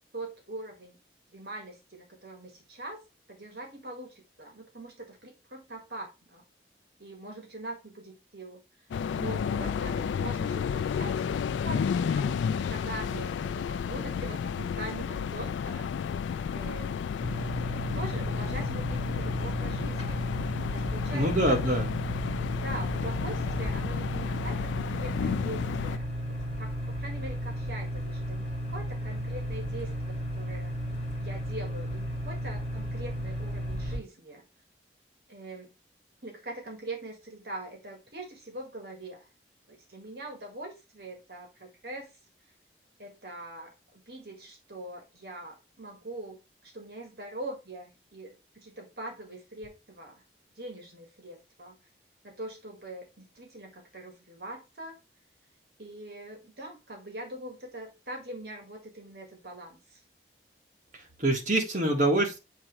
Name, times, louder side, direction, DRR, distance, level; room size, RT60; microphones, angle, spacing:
voice 1, 0.1-1.0 1.3-3.0 3.3-6.4 7.0-8.6 9.2-15.9 16.5-17.0 17.9-20.3 20.7-21.6 22.6-26.1 26.6-30.7 31.2-34.4 35.3-35.7 36.2-39.3 39.7-42.1 43.0-50.2 50.6-51.8 52.2-54.9 55.8-60.0, right 1 dB, 60° right, 2 dB, 1.7 m, -42 dB
sound 1, 8.9-26.0, left 7 dB, 85° left, 0.3 m, -32 dB
sound 2, 17.2-34.0, equal, 35° left, 1.7 m, -34 dB
voice 2, 21.1-21.9 61.2-62.4, right 1 dB, 45° right, 2 dB, 1.6 m, -25 dB
7.5 x 3.0 x 4.6 m, 0.27 s
head